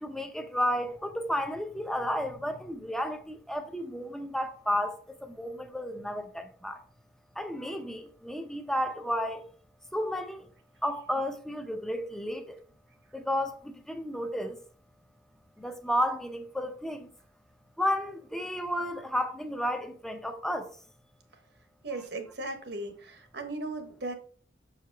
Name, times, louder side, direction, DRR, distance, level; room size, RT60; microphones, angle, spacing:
voice 1, 0.0-6.8 7.4-9.4 9.9-10.5 10.8-12.6 13.1-14.6 15.6-17.1 17.8-20.7 21.9-22.0, equal, 5° left, 0.7 m, -32 dB
voice 2, 21.8-24.1, right 2 dB, 65° right, 1.2 m, -37 dB
6.6 x 4.9 x 3.4 m
head